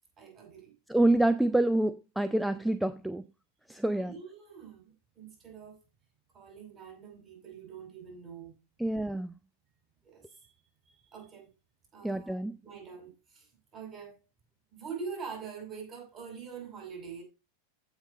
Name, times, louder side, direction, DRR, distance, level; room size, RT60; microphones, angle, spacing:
voice 1, 0.2-0.7 3.9-5.8 6.3-8.6 10.0-10.5 10.9-11.5 11.9-12.4 12.6-13.5 13.7-14.2 14.7-17.2, right 5 dB, 30° right, 5.5 m, -44 dB
voice 2, 0.9-3.2 3.7-4.1 8.8-9.3 12.0-12.6, right 1 dB, ahead, 0.4 m, -27 dB
15.0 x 5.6 x 3.2 m
figure-of-eight pair, 90°, 0 cm